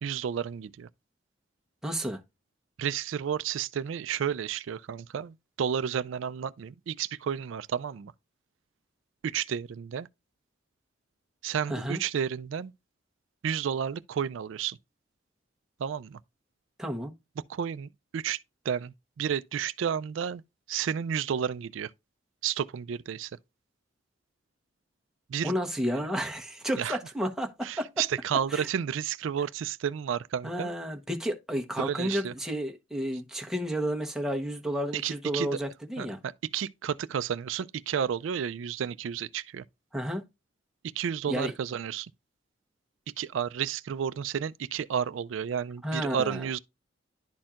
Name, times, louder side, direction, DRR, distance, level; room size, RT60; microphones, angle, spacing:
voice 1, 0.0-0.9 2.8-8.1 9.2-10.1 11.4-12.7 13.4-14.8 15.8-16.2 17.4-18.4 18.6-20.4 20.7-21.9 22.4-23.3 25.3-25.5 25.9-26.1 26.8-27.0 27.6-30.7 31.8-32.3 34.9-35.5 36.0-39.6 40.8-42.1 43.2-46.6, right 8 dB, 80° right, 0.4 m, -31 dB
voice 2, 1.8-2.2 11.7-12.0 16.8-17.1 25.4-27.9 28.5-28.7 30.4-36.2 39.9-40.2 41.3-41.5 45.8-46.4, equal, ahead, 0.9 m, -31 dB
11.0 x 4.3 x 2.4 m
head